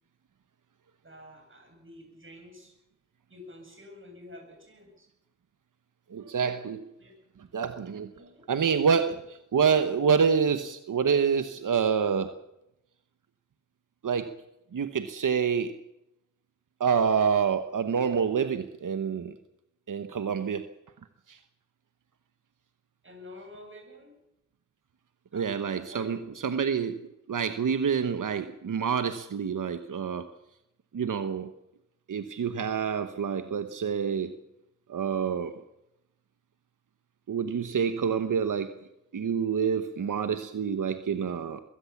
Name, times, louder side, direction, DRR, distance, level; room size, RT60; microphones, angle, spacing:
voice 1, 1.0-2.7 3.3-5.1 7.0-7.1 8.1-8.5 23.0-24.1 25.3-25.5 25.8-26.4, left 1 dB, 40° right, 2 dB, 8.0 m, -49 dB
voice 2, 6.1-6.9 7.5-8.1 8.5-12.4 14.0-14.4 14.7-15.8 16.8-19.3 19.9-20.7 21.3-21.4 25.3-26.2 26.4-30.3 30.9-31.5 32.1-34.3 34.9-35.5 37.3-38.7 39.1-41.6, right 6 dB, 85° right, 9 dB, 1.0 m, -27 dB
22.0 x 16.5 x 7.2 m, 0.86 s
wide cardioid pair, 95°, 31 cm